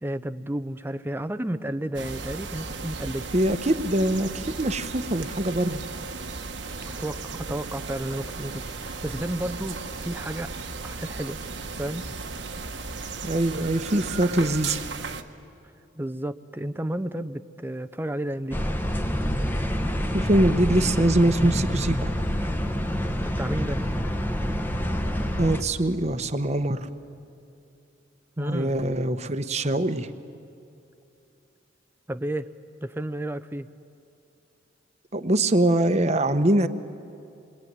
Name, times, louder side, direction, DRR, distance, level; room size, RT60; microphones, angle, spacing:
voice 1, 0.0-3.3 6.8-10.5 10.8-11.4 11.8-12.1 16.0-18.6 23.2-23.8 28.4-28.7 32.1-32.5 32.8-33.7, right 1 dB, 10° right, 11 dB, 0.7 m, -32 dB
sound 1, 1.9-15.2, right 4 dB, 75° right, 1.3 m, -36 dB
voice 2, 3.3-5.8 13.2-14.8 20.1-22.1 25.4-26.9 28.4-30.1 35.1-36.7, right 1 dB, 35° right, 10 dB, 1.0 m, -23 dB
sound 2, 18.5-25.6, equal, 10° left, 1.3 m, -27 dB
27.0 x 22.0 x 9.6 m, 2.7 s
head